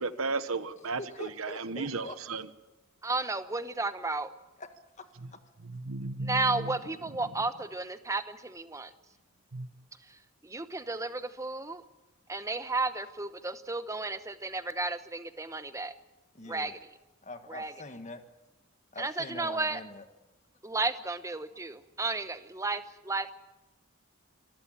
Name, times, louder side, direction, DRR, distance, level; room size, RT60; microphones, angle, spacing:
voice 1, 0.0-2.5 5.2-5.3 5.6-6.8 7.1-7.4 9.5-9.7, right 3 dB, 80° right, 13 dB, 1.1 m, -35 dB
voice 2, 1.0-2.1 4.6-4.7 5.0-5.1 16.3-16.7 17.2-18.2 18.9-20.1, left 2 dB, 35° left, 8 dB, 1.5 m, -44 dB
voice 3, 3.0-4.3 6.3-8.9 10.1-11.8 12.3-15.9 16.5-16.8 17.5-17.7 19.0-19.8 20.6-23.3, right 3 dB, 15° right, 11 dB, 0.9 m, -33 dB
25.5 x 14.0 x 8.8 m, 1.1 s
head